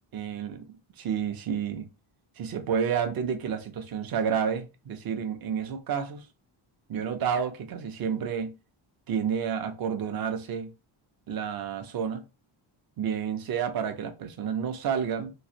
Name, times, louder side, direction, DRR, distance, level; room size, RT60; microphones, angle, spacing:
voice 1, 0.1-0.7 1.0-1.9 2.4-6.3 6.9-8.5 9.1-10.7 11.3-12.2 13.0-15.3, right 7 dB, 50° right, 0.6 m, -30 dB
3.1 x 2.4 x 2.7 m
wide cardioid pair, 170°, 48 cm